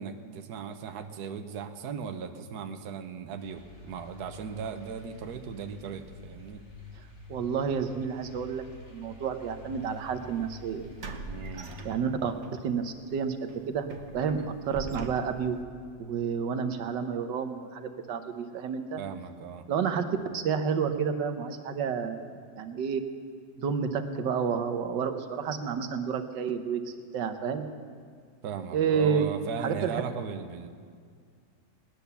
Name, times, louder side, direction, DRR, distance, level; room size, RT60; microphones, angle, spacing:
voice 1, 0.0-6.6 11.3-11.7 19.0-19.7 28.4-30.7, right 6 dB, 70° right, 6 dB, 1.3 m, -38 dB
sound 1, 3.4-12.0, left 3 dB, 80° left, 4.0 m, -48 dB
voice 2, 7.3-8.6 8.9-10.9 11.8-13.9 14.1-15.6 16.0-19.0 19.7-20.1 20.3-22.3 22.6-23.0 23.6-26.8 27.1-27.7 28.7-29.2 29.6-30.0, right 6 dB, 85° right, 8 dB, 1.6 m, -30 dB
sound 2, 9.9-10.0 11.0-12.5 12.9-13.0 13.5-15.6, right 3 dB, 45° right, 1.2 m, -42 dB
19.0 x 10.5 x 6.9 m, 2.1 s
omnidirectional pair, 1.9 m